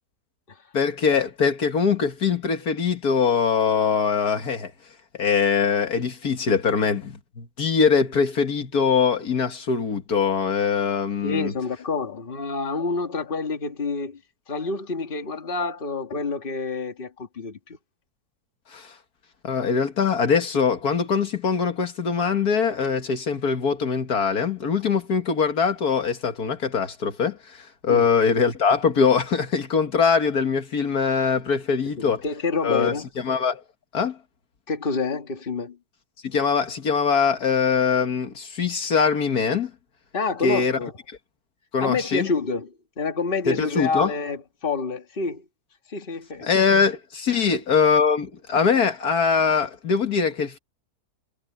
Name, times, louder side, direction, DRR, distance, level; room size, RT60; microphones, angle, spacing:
voice 1, 0.7-4.7 5.2-11.5 18.7-18.9 19.4-32.2 32.6-32.9 33.2-33.6 33.9-34.2 36.2-39.7 40.4-40.8 41.7-42.3 43.5-44.1 46.4-50.6, left 5 dB, 70° left, 2.1 m, -22 dB
voice 2, 11.2-14.2 14.5-17.8 27.9-28.1 32.0-33.1 34.7-35.8 40.1-40.9 41.8-45.4 45.9-46.5 47.3-47.5, left 4 dB, 35° left, 1.9 m, -28 dB
omnidirectional pair, 1.7 m